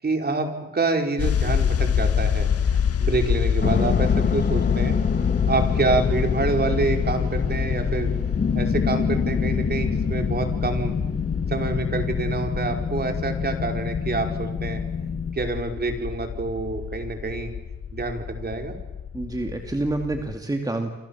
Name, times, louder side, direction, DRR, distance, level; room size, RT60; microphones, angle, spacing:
voice 1, 0.0-5.0 5.5-8.1 8.5-10.9 11.5-14.8 15.3-17.5 17.9-18.7, right 3 dB, 30° right, 5 dB, 5.0 m, -27 dB
sound 1, 1.2-20.4, left 7 dB, 50° left, 2.0 m, -27 dB
sound 2, 3.6-15.3, left 5 dB, 35° left, 2.2 m, -27 dB
voice 2, 19.1-20.9, right 2 dB, 10° right, 4 dB, 2.6 m, -27 dB
29.5 x 25.5 x 7.3 m, 1.1 s
cardioid pair, 90°, 30 cm